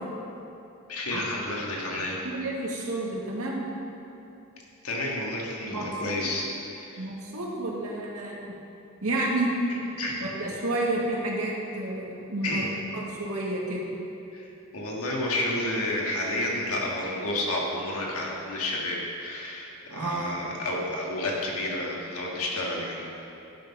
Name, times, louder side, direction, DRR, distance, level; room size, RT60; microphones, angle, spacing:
voice 1, 0.9-2.3 4.8-7.1 10.0-10.2 12.4-12.7 14.3-23.1, left 1 dB, 80° left, -2 dB, 1.7 m, -30 dB
voice 2, 2.2-3.6 5.7-6.3 7.0-8.5 9.0-9.6 10.2-12.7 12.9-13.9 19.9-20.4, right 2 dB, 85° right, -3 dB, 1.7 m, -30 dB
10.5 x 5.9 x 5.5 m, 2.9 s
head